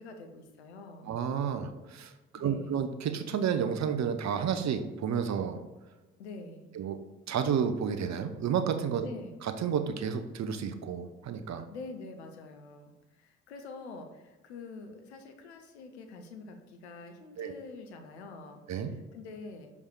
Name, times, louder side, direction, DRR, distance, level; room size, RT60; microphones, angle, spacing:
voice 1, 0.0-1.1 2.4-2.8 6.2-6.7 9.0-9.4 11.7-19.7, left 3 dB, 90° left, 5 dB, 0.8 m, -46 dB
voice 2, 1.1-5.6 6.7-7.0 7.3-9.1 9.6-11.6 17.4-17.5 18.7-18.9, right 7 dB, 55° right, 8 dB, 1.0 m, -31 dB
6.5 x 5.5 x 4.7 m, 1.1 s
hypercardioid pair, 40°, 32 cm